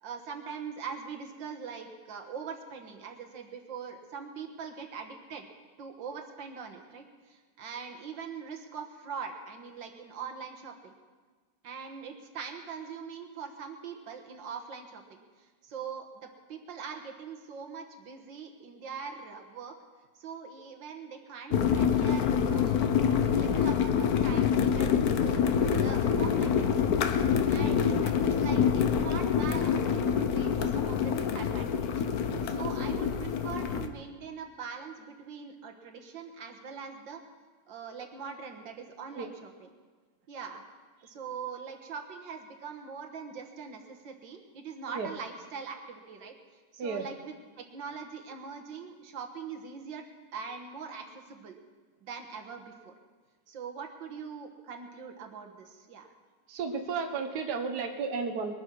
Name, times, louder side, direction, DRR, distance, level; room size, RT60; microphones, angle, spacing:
voice 1, 0.0-5.5 5.8-10.9 11.6-19.8 20.2-26.9 27.5-31.9 32.4-37.2 37.7-39.7 40.3-40.6 41.0-46.3 46.7-50.0 50.3-51.6 52.0-52.9 53.5-56.1, right 6 dB, 85° right, 4 dB, 2.1 m, -42 dB
sound 1, 21.5-33.9, left 7 dB, 60° left, 1.2 m, -26 dB
voice 2, 56.5-58.5, right 5 dB, 65° right, 5 dB, 1.6 m, -33 dB
21.5 x 9.5 x 6.3 m, 1.4 s
omnidirectional pair, 2.0 m